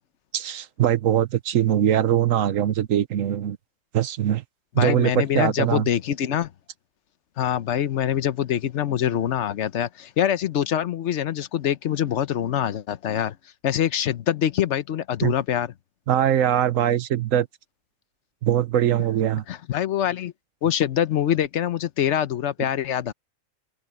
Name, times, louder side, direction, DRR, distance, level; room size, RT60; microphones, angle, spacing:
voice 1, 0.3-3.6 3.9-4.4 4.7-5.8 15.2-15.3 16.1-17.5 18.4-19.4, right 11 dB, 70° right, 1.2 m, -22 dB
voice 2, 4.8-6.5 7.4-13.3 13.6-15.7 19.5-20.3 20.6-23.1, left 10 dB, 60° left, 1.0 m, -24 dB
open air
omnidirectional pair, 1.5 m